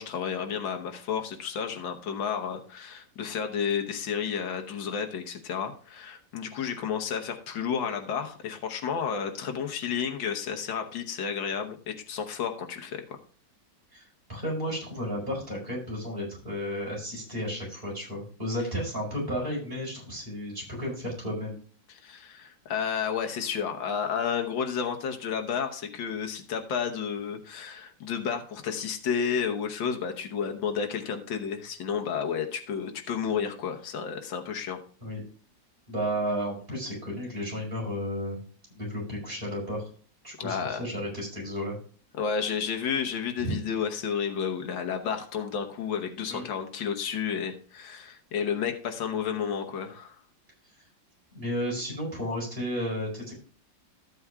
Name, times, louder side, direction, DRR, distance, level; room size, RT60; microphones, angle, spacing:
voice 1, 0.0-13.0 21.9-34.8 40.4-40.8 42.2-50.2, left 7 dB, 85° left, 5 dB, 1.8 m, -31 dB
voice 2, 14.3-21.6 35.0-35.2 35.9-38.4 38.7-39.8 40.2-41.8 43.4-43.6 46.3-46.4 51.3-53.3, equal, 30° right, -3 dB, 4.8 m, -33 dB
14.0 x 8.5 x 2.3 m, 0.42 s
omnidirectional pair, 2.0 m